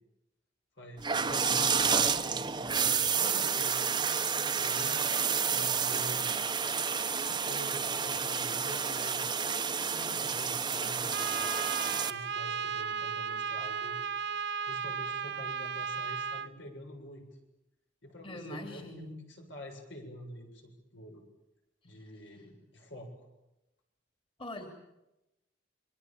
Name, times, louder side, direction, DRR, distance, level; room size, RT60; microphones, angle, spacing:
voice 1, 0.8-3.9 4.5-6.3 7.2-9.5 10.1-14.0 14.6-17.3 18.0-21.2 21.8-23.3, equal, 75° left, 3 dB, 7.4 m, -47 dB
sound 1, 1.0-12.1, right 6 dB, 25° right, 1.1 m, -30 dB
voice 2, 9.8-10.2 18.2-19.2 24.4-24.7, left 1 dB, 30° left, 4 dB, 3.1 m, -43 dB
Trumpet, 11.1-16.5, right 6 dB, 60° right, 1.1 m, -35 dB
28.5 x 23.5 x 7.4 m, 0.93 s
head